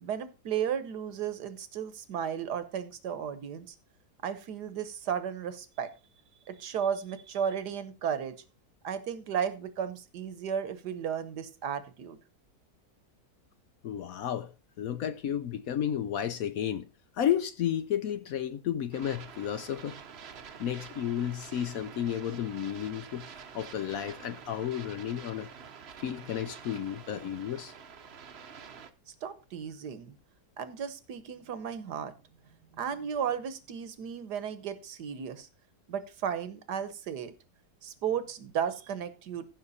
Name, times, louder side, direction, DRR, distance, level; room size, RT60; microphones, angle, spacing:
voice 1, 0.0-3.7 4.2-5.9 6.5-8.4 8.8-12.2 29.1-30.2 30.6-32.1 32.7-35.5 35.9-37.3 37.8-39.5, right 8 dB, 70° right, 1.6 m, -34 dB
voice 2, 13.8-16.9 17.2-20.0 20.6-23.3 23.5-25.5 26.0-27.7, left 10 dB, 65° left, 1.0 m, -32 dB
sound 1, 18.9-28.9, right 6 dB, 45° right, 0.9 m, -48 dB
15.0 x 6.1 x 4.1 m
omnidirectional pair, 1.8 m